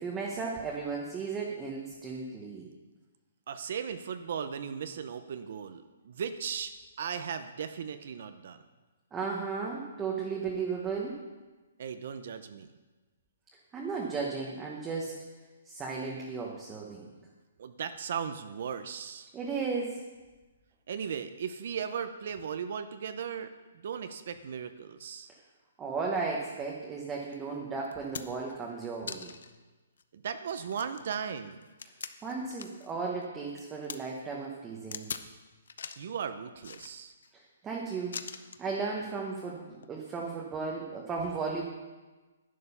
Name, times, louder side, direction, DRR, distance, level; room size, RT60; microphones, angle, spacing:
voice 1, 0.0-2.7 9.1-11.2 13.7-15.1 15.6-17.0 19.3-20.0 25.8-29.3 32.2-35.1 37.3-38.2 38.6-41.6, right 4 dB, 10° right, -2 dB, 1.0 m, -35 dB
voice 2, 3.5-8.6 11.8-12.7 17.6-19.3 20.9-23.5 23.8-25.3 30.1-31.6 36.0-37.1, right 7 dB, 50° right, 10 dB, 0.6 m, -37 dB
sound 1, 27.3-27.4 27.8-28.5 29.1-29.5 30.0-30.1 30.5-32.9 33.2-34.0 34.9-35.3 35.7-36.1 36.6-37.3 38.1-38.7 39.7-39.9, left 6 dB, 70° left, 0.7 m, -42 dB
11.0 x 9.2 x 5.6 m, 1.3 s
hypercardioid pair, 170°, 0 cm